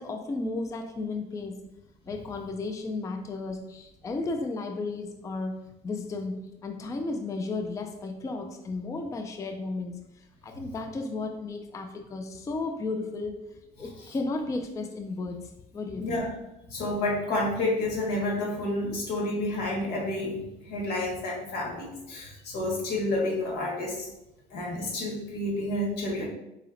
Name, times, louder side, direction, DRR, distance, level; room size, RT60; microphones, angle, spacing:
voice 1, 0.0-1.6 2.0-10.0 10.4-13.4 13.8-16.2, left 3 dB, 20° left, 5 dB, 0.3 m, -34 dB
voice 2, 16.0-16.3 16.7-24.1 24.5-26.2, left 1 dB, 80° left, -2 dB, 1.5 m, -30 dB
4.2 x 3.8 x 2.5 m, 0.90 s
cardioid pair, 110°, 17 cm